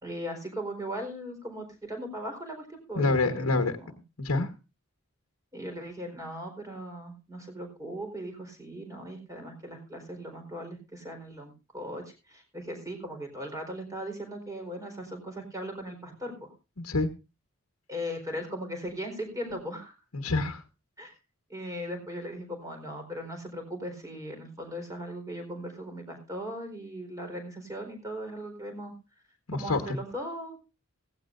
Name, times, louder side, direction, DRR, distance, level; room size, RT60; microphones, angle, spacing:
voice 1, 0.0-3.9 5.5-12.0 12.3-16.5 17.9-19.9 21.0-21.1 21.5-28.9 29.5-30.6, equal, 15° right, 4 dB, 4.3 m, -38 dB
voice 2, 2.9-3.8 4.2-4.5 16.8-17.1 20.1-20.6 29.5-29.9, left 3 dB, 85° left, 7 dB, 1.4 m, -27 dB
16.5 x 15.5 x 2.6 m, 0.27 s
head